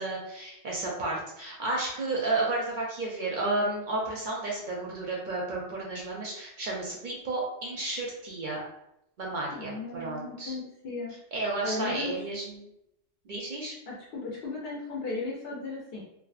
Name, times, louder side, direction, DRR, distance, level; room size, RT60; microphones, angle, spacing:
voice 1, 0.0-8.6 9.2-10.5 11.3-12.7 13.2-13.7, right 2 dB, 55° right, -3 dB, 0.6 m, -32 dB
voice 2, 9.4-11.1 11.6-12.2 13.9-16.0, left 3 dB, 60° left, -3 dB, 0.7 m, -36 dB
2.7 x 2.2 x 2.3 m, 0.81 s
omnidirectional pair, 1.2 m